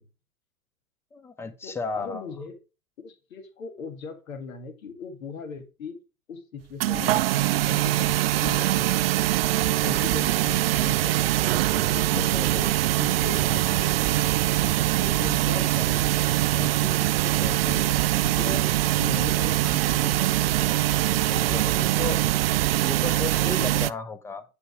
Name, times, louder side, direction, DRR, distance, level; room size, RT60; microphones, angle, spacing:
voice 1, 1.1-2.3 12.1-12.6 21.3-22.2 22.8-24.4, left 4 dB, 5° left, 0.6 m, -34 dB
voice 2, 1.6-2.5 3.0-6.0 6.3-7.2 7.7-8.1 8.4-9.1 9.6-11.3 11.7-12.7 13.0-13.9 14.6-16.1 16.5-18.7 18.9-20.3 20.7-21.0 21.2-21.9, left 5 dB, 65° left, 2.0 m, -38 dB
sound 1, 6.8-23.9, right 15 dB, 45° right, 0.4 m, -23 dB
9.9 x 5.4 x 4.7 m
figure-of-eight pair, 110°, 44 cm